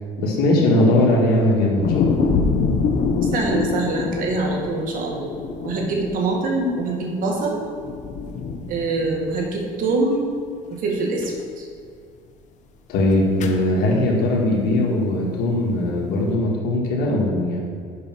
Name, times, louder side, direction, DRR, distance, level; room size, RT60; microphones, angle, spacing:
voice 1, 0.2-2.4 12.9-17.6, left 1 dB, 70° left, -3 dB, 1.7 m, -20 dB
sound 1, 1.8-7.4 7.8-9.6 9.9-10.0 11.2-11.4 13.1-13.6, left 5 dB, 50° left, 0.9 m, -25 dB
voice 2, 3.2-5.4 5.6-7.6 8.7-10.2 10.7-11.7, right 3 dB, 60° right, 0 dB, 1.9 m, -24 dB
6.8 x 5.3 x 6.1 m, 2.3 s
cardioid pair, 110°, 16 cm